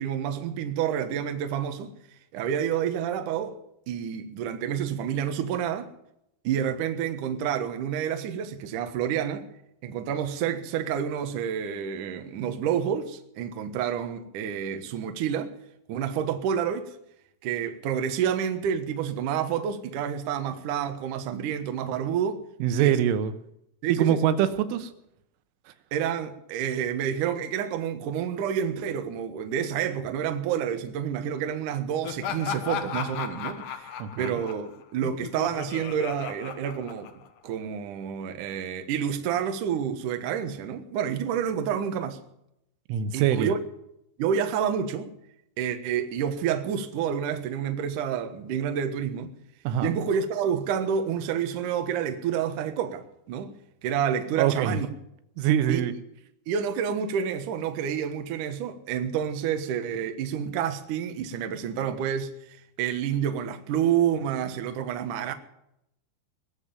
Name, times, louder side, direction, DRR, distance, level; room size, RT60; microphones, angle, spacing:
voice 1, 0.0-1.9 2.3-3.6 3.9-5.9 6.4-9.5 9.8-15.6 15.9-17.0 17.4-22.4 22.8-23.0 23.8-24.2 25.9-42.2 43.1-43.6 44.2-45.1 45.6-49.3 49.8-53.5 53.8-54.9 55.7-55.9 56.5-65.3, right 8 dB, 65° right, 2.1 m, -29 dB
voice 2, 22.6-23.3 23.9-24.9 34.0-34.4 42.9-43.5 49.7-49.9 54.4-54.8 55.4-55.9, right 10 dB, 90° right, 3.5 m, -24 dB
Laughter, 32.0-37.5, left 8 dB, 75° left, 1.8 m, -35 dB
21.0 x 7.5 x 8.9 m
omnidirectional pair, 5.5 m